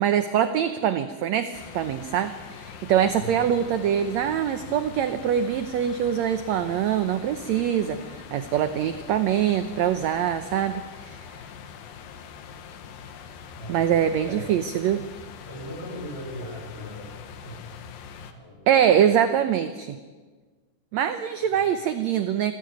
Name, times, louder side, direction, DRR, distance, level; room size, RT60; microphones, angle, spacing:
voice 1, 0.0-11.2 13.7-15.1 18.7-20.0 20.9-22.5, right 9 dB, 70° right, 10 dB, 1.8 m, -24 dB
sound 1, 1.5-18.3, left 7 dB, 90° left, 3.2 m, -43 dB
voice 2, 3.1-3.5 13.6-14.5 15.4-17.6 18.3-18.7 21.4-21.7, equal, 15° left, -1 dB, 7.2 m, -39 dB
25.5 x 15.0 x 9.3 m, 1.4 s
omnidirectional pair, 3.9 m